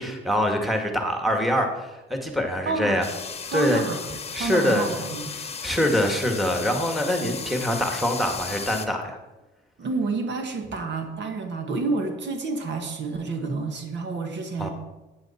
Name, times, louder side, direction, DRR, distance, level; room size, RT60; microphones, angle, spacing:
voice 1, 0.0-3.0 3.5-3.8 4.3-4.9 5.6-9.2 14.6-14.7, equal, ahead, 3 dB, 1.8 m, -24 dB
voice 2, 2.7-3.0 3.5-5.3 9.8-14.7, right 3 dB, 65° right, 5 dB, 1.5 m, -29 dB
sound 1, 3.0-8.9, left 5 dB, 30° left, 1.0 m, -35 dB
11.0 x 8.8 x 4.3 m, 1.1 s
cardioid pair, 90°, 20 cm